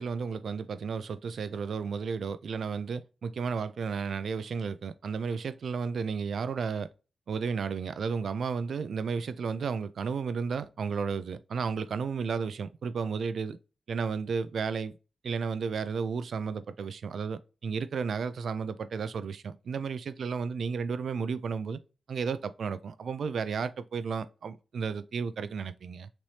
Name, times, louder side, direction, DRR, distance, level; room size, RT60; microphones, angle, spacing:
voice 1, 0.0-6.9 7.3-13.6 13.9-15.0 15.2-21.8 22.1-26.1, right 5 dB, 70° right, 0.3 m, -33 dB
5.9 x 3.2 x 2.7 m
wide cardioid pair, 145°, 0 cm